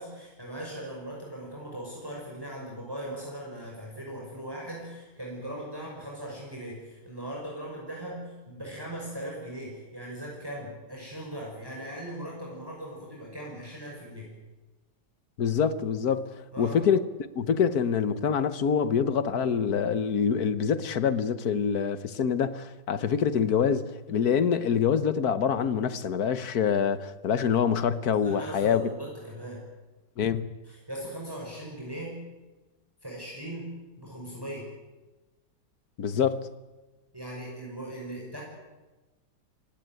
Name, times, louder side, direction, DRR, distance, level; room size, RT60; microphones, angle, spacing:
voice 1, 0.0-14.3 16.5-16.8 28.2-29.6 30.6-32.2 33.0-34.7 37.1-38.4, right 1 dB, 10° right, 5.8 m, -39 dB
voice 2, 15.4-17.1 17.3-28.8 30.2-30.5 36.0-36.5, left 7 dB, 60° left, 1.6 m, -25 dB
27.5 x 17.0 x 9.2 m
omnidirectional pair, 1.9 m